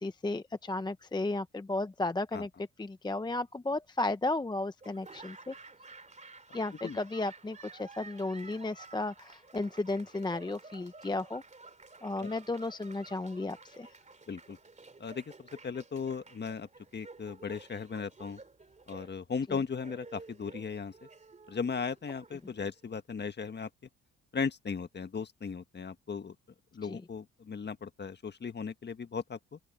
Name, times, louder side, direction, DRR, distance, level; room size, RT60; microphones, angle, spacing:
voice 1, 0.0-2.5 2.8-5.5 6.5-11.4 12.0-13.9 26.8-27.0, left 2 dB, 15° left, 0.8 m, -34 dB
Laughter / Applause, 4.8-22.9, right 3 dB, 25° right, 2.8 m, -53 dB
voice 2, 14.3-14.6 15.0-18.4 18.9-21.1 21.5-23.7 24.3-26.3 26.7-29.6, left 5 dB, 35° left, 1.6 m, -37 dB
open air
cardioid pair, 90°, 30 cm